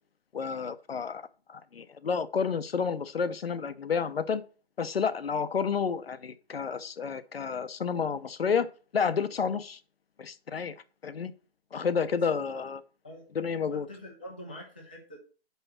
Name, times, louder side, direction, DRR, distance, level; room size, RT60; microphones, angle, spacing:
voice 1, 0.3-4.4 4.8-8.7 8.9-9.8 10.2-10.7 11.0-11.3 11.7-12.8 13.3-13.9, left 6 dB, 65° left, 0.8 m, -30 dB
voice 2, 12.1-12.6 13.0-13.3 13.7-15.2, equal, 10° left, 0.5 m, -45 dB
5.6 x 5.4 x 5.9 m
hypercardioid pair, 165°, 32 cm